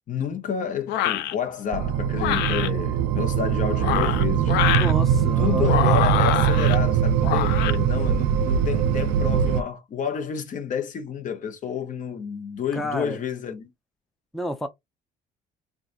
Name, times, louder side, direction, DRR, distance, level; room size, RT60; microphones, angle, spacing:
voice 1, 0.1-4.5 5.4-13.7, left 7 dB, 50° left, 0.9 m, -30 dB
sound 1, 0.9-1.3 2.2-2.7 3.7-4.9 5.6-6.8 7.2-7.8, left 12 dB, 80° left, 0.4 m, -25 dB
sound 2, 1.7-9.6, right 8 dB, 85° right, 0.4 m, -22 dB
voice 2, 4.7-5.7 12.7-13.2 14.3-14.7, left 1 dB, ahead, 0.4 m, -30 dB
3.8 x 2.4 x 2.5 m
cardioid pair, 110°, 17 cm